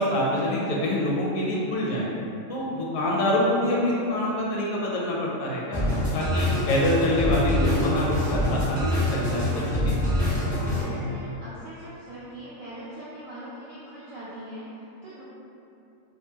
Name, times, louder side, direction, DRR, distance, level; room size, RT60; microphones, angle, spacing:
voice 1, 0.0-2.1 2.5-5.9 6.1-10.0, left 1 dB, 75° left, -4 dB, 1.0 m, -26 dB
sound 1, 5.7-10.8, left 1 dB, 10° left, 0.4 m, -25 dB
voice 2, 10.6-15.2, right 1 dB, 65° right, -11 dB, 0.5 m, -41 dB
2.5 x 2.4 x 2.7 m, 2.8 s
omnidirectional pair, 1.4 m